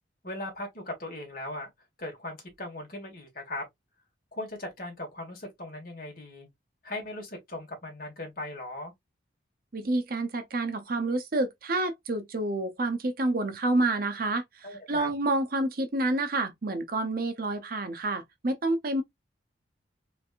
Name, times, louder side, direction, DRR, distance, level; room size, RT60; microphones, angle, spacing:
voice 1, 0.2-1.7 2.0-3.7 4.3-6.5 6.8-8.9 14.6-15.1, left 1 dB, 50° left, 1.6 m, -38 dB
voice 2, 9.7-19.0, right 2 dB, 50° right, 0.7 m, -28 dB
3.3 x 3.2 x 2.4 m
head